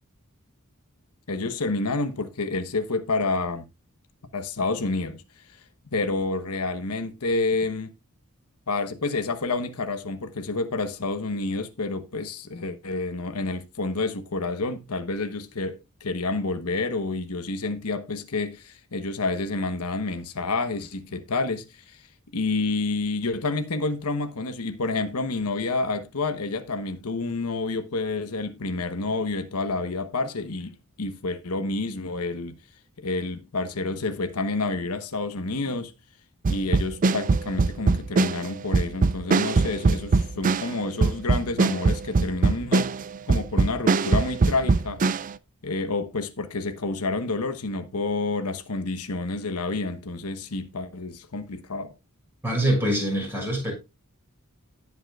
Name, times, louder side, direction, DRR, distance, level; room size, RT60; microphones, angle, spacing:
voice 1, 1.3-3.6 4.3-5.2 5.9-7.9 8.7-22.0 22.3-32.5 33.0-35.9 36.5-42.9 43.3-45.0 45.6-51.9, left 3 dB, 85° left, 1.1 m, -29 dB
sound 1, 36.4-45.3, right 3 dB, 35° right, 0.4 m, -22 dB
voice 2, 52.4-53.7, right 1 dB, 10° right, 6.3 m, -24 dB
17.5 x 5.9 x 2.4 m
head